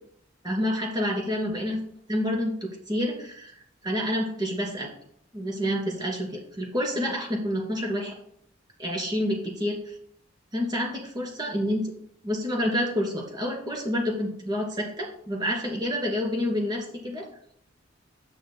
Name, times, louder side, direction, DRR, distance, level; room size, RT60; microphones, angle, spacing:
voice 1, 0.4-1.8 2.1-4.9 5.3-8.1 8.8-10.0 10.5-11.9 12.2-17.3, equal, 20° right, 0 dB, 2.7 m, -28 dB
12.5 x 9.3 x 2.2 m, 0.67 s
head